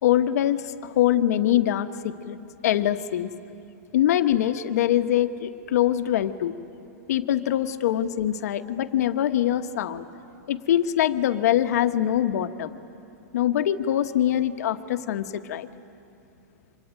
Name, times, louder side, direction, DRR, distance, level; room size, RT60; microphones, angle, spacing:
voice 1, 0.0-2.4 2.6-3.3 3.9-6.5 7.1-10.0 10.5-12.7 13.3-15.7, left 11 dB, 70° left, 9 dB, 1.0 m, -23 dB
25.0 x 21.0 x 9.2 m, 2.8 s
supercardioid pair, 145°, 9 cm